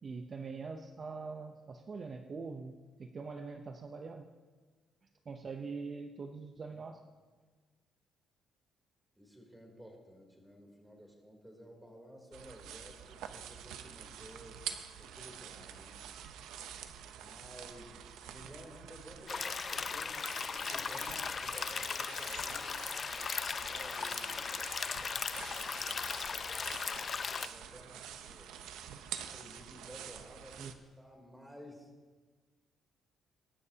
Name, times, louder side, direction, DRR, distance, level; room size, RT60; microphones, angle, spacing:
voice 1, 0.0-4.3 5.3-7.0 30.6-30.7, right 4 dB, 40° right, 5 dB, 0.7 m, -43 dB
voice 2, 9.1-14.6 15.0-16.1 17.2-18.0 18.2-22.9 23.5-24.6 25.4-26.5 26.9-28.6 29.1-30.7 31.0-31.9, equal, 5° right, 0 dB, 3.3 m, -54 dB
sound 1, 12.3-30.7, right 9 dB, 90° right, 0.8 m, -47 dB
sound 2, 19.3-27.5, left 5 dB, 40° left, 0.5 m, -37 dB
22.0 x 12.0 x 2.9 m, 1.4 s
cardioid pair, 110°, 0 cm